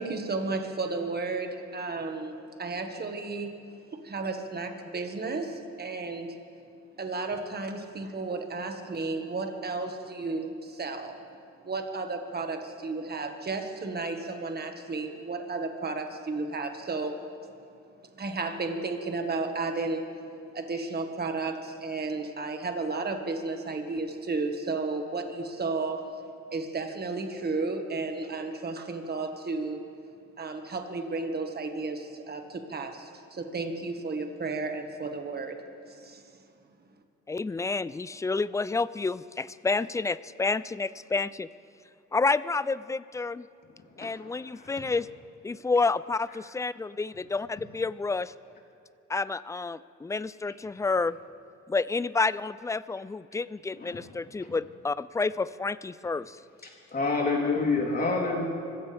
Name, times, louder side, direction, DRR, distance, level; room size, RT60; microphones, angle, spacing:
voice 1, 0.0-3.5 3.9-6.4 7.0-11.2 11.6-17.2 18.1-20.1 20.5-26.0 26.5-29.8 30.4-35.6 35.9-36.2, right 3 dB, 30° right, 5 dB, 1.7 m, -33 dB
voice 2, 37.3-41.5 42.1-43.4 44.0-45.1 45.4-48.3 49.1-51.2 51.7-56.4, left 3 dB, 10° left, 17 dB, 0.3 m, -29 dB
voice 3, 44.4-44.8 53.8-53.9 54.4-54.5 56.6-58.5, left 3 dB, 30° left, -2 dB, 3.5 m, -28 dB
25.5 x 15.5 x 3.5 m, 2.4 s
cardioid pair, 90°, 30 cm